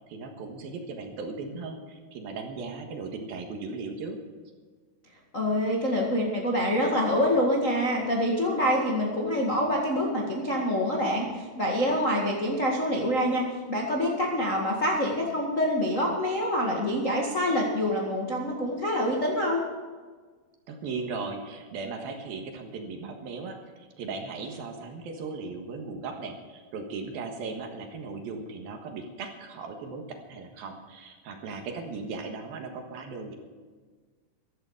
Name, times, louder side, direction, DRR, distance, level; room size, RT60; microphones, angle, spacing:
voice 1, 0.1-4.2 20.7-33.4, right 4 dB, 65° right, 3 dB, 3.1 m, -37 dB
voice 2, 5.3-19.6, equal, 40° left, -2 dB, 1.1 m, -26 dB
15.0 x 13.5 x 4.9 m, 1.5 s
omnidirectional pair, 4.8 m